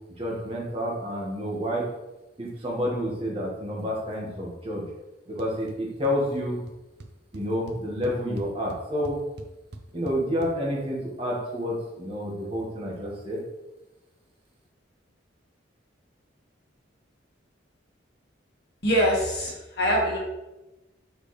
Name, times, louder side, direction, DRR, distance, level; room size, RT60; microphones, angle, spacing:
voice 1, 0.2-1.8 2.4-4.8 5.3-6.6 7.3-9.2 9.9-13.4, equal, 30° right, -4 dB, 1.6 m, -29 dB
sound 1, 5.4-5.8 6.0-6.4 6.7-6.8 7.0-10.5, right 2 dB, 55° right, 0.6 m, -42 dB
voice 2, 18.8-20.2, equal, 55° left, -2 dB, 1.7 m, -23 dB
6.3 x 5.1 x 3.2 m, 1.0 s
head